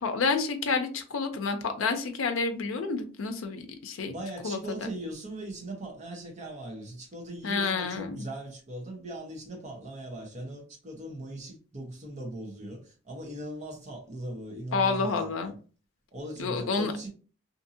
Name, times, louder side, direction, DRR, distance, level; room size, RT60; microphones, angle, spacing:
voice 1, 0.0-4.1 4.4-4.9 7.4-8.2 14.7-15.5 16.4-16.9, left 4 dB, 90° left, 0.5 m, -29 dB
voice 2, 4.0-15.5 16.1-17.1, right 1 dB, 35° right, 0.8 m, -39 dB
2.6 x 2.6 x 2.6 m
head